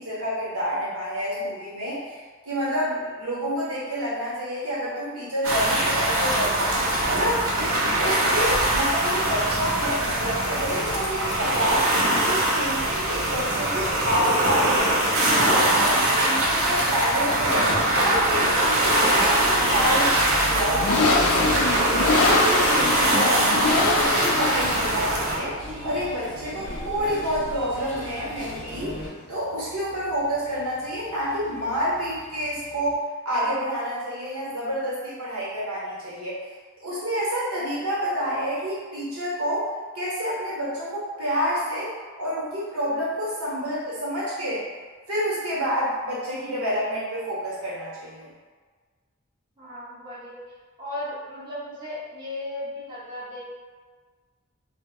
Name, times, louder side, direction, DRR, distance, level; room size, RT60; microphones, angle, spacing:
voice 1, 0.0-6.7 7.1-7.6 8.0-11.9 12.2-17.7 18.0-20.1 20.4-22.0 22.3-28.9 29.3-36.4 36.8-39.7 39.9-41.9 42.2-44.6 45.1-48.3, equal, 85° right, -7 dB, 1.0 m, -28 dB
sound 1, 5.4-25.4, right 1 dB, 70° right, 0.6 m, -22 dB
sound 2, 15.0-32.9, left 3 dB, 85° left, 0.4 m, -28 dB
sound 3, 18.1-29.1, left 1 dB, 60° left, 0.8 m, -37 dB
voice 2, 49.6-50.4 50.8-53.5, left 1 dB, 20° right, -10 dB, 0.7 m, -35 dB
2.1 x 2.0 x 3.5 m, 1.5 s
head